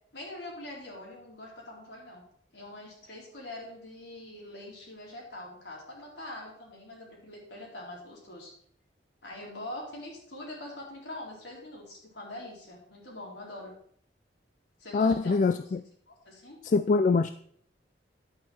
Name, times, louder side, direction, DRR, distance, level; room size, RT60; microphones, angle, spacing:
voice 1, 0.1-2.2 2.5-8.5 9.2-13.7 14.8-15.7 16.1-16.6, left 1 dB, 70° left, -2 dB, 3.9 m, -43 dB
voice 2, 14.9-15.8 16.6-17.3, left 4 dB, 45° left, 12 dB, 0.3 m, -24 dB
10.5 x 8.6 x 4.3 m, 0.63 s
head